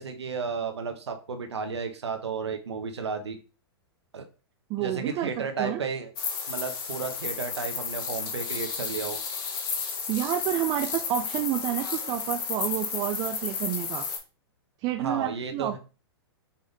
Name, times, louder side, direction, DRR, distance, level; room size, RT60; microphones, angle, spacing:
voice 1, 0.0-3.4 4.1-4.2 4.8-6.1 6.5-9.2 15.0-15.8, right 5 dB, 90° right, 5 dB, 0.9 m, -33 dB
voice 2, 4.7-5.8 10.1-14.1 14.8-15.8, right 13 dB, 30° right, 5 dB, 0.4 m, -29 dB
sound 1, 6.2-14.2, left 6 dB, 50° left, 1.1 m, -32 dB
5.5 x 2.6 x 3.5 m, 0.34 s
hypercardioid pair, 120°, 14 cm